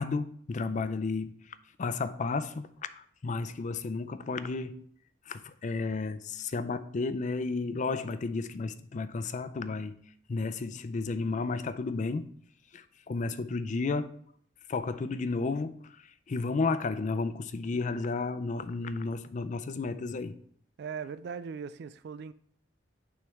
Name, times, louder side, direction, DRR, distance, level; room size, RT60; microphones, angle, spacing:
voice 1, 0.0-4.8 5.3-10.0 10.3-12.3 12.7-14.2 14.7-20.4, left 3 dB, 45° left, 0.4 m, -33 dB
voice 2, 20.8-22.3, right 6 dB, 60° right, 0.3 m, -39 dB
9.2 x 3.2 x 3.5 m
head